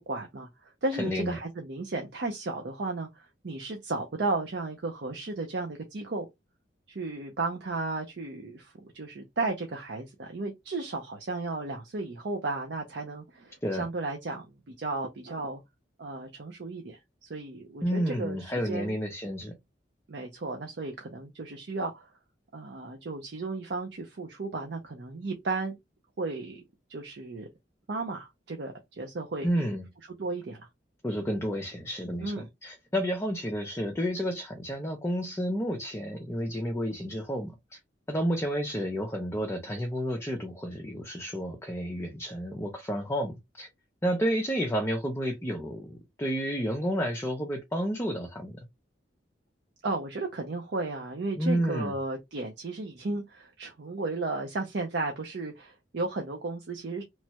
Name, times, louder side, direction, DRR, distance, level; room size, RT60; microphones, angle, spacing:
voice 1, 0.1-6.3 6.9-15.6 16.0-18.4 18.7-19.0 20.1-22.1 22.5-25.8 26.2-26.6 26.9-27.5 27.9-29.7 30.1-30.7 32.2-32.5 49.8-57.0, right 3 dB, 65° right, 0.6 m, -34 dB
voice 2, 1.0-1.4 13.6-13.9 17.8-19.5 29.4-29.9 31.0-37.8 38.1-43.7 44.0-48.5 51.4-51.9, equal, 15° left, 0.5 m, -31 dB
3.1 x 2.2 x 2.8 m
head